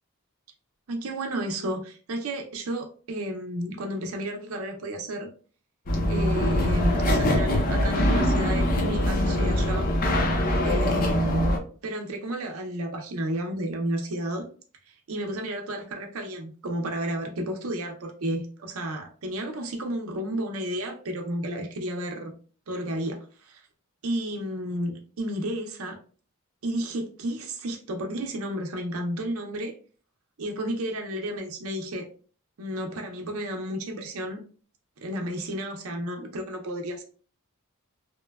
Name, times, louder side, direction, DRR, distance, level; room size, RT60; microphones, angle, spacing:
voice 1, 0.9-5.3 6.1-9.9 10.6-11.5 11.8-14.5 14.9-18.4 18.8-22.3 22.7-23.6 24.0-26.0 26.6-29.7 30.4-32.1 32.6-34.4 35.0-37.0, right 1 dB, 85° right, 3 dB, 0.6 m, -32 dB
sound 1, 5.9-11.6, left 1 dB, 45° left, 0.5 m, -23 dB
3.0 x 2.1 x 2.2 m, 0.41 s
head